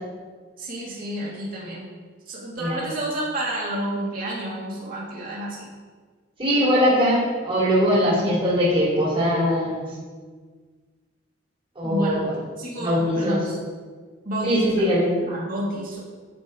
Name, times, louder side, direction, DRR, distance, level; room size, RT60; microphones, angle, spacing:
voice 1, 0.6-1.9 2.3-5.7 8.0-8.5 11.8-12.2 12.6-13.6 14.2-14.9 15.3-16.0, right 1 dB, 45° right, -5 dB, 2.6 m, -30 dB
voice 2, 6.4-9.9 11.8-12.3 12.8-13.4 14.4-15.1, equal, 30° right, -6 dB, 2.8 m, -21 dB
13.5 x 5.3 x 3.9 m, 1.5 s
head